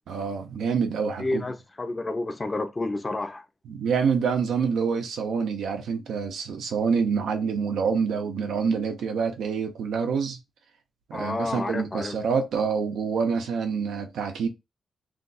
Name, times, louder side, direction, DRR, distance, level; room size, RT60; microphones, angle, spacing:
voice 1, 0.1-1.4 3.7-10.4 11.1-14.5, right 6 dB, 85° right, 0.7 m, -26 dB
voice 2, 1.2-3.4 11.1-12.2, left 2 dB, 25° left, 0.5 m, -30 dB
2.5 x 2.3 x 3.9 m
cardioid pair, 105°, 0 cm